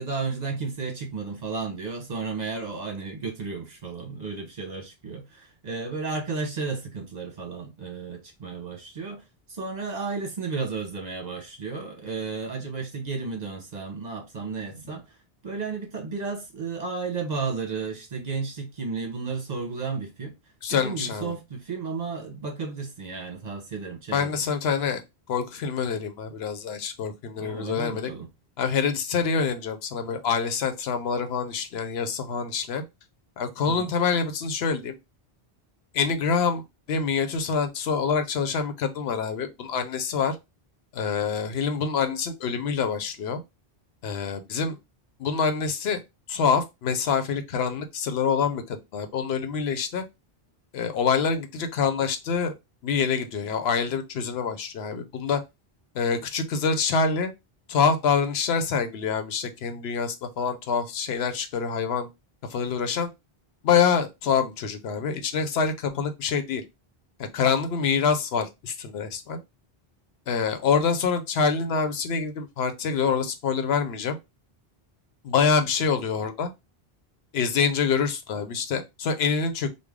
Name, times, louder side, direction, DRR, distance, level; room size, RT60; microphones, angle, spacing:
voice 1, 0.0-15.2 15.4-20.4 20.7-24.4 27.4-28.3 33.6-33.9, right 4 dB, 45° right, 0.9 m, -33 dB
voice 2, 20.6-21.3 24.1-25.0 25.3-28.1 28.6-32.8 33.4-34.9 35.9-36.6 36.9-40.4 40.9-43.4 44.0-44.8 45.2-46.0 46.3-50.0 50.7-52.5 52.8-55.4 55.9-57.3 57.7-62.1 62.5-63.1 63.6-66.6 67.3-69.4 70.3-74.2 75.2-76.5 77.3-79.7, left 6 dB, 80° left, 0.9 m, -26 dB
3.2 x 2.2 x 3.5 m
omnidirectional pair, 1.0 m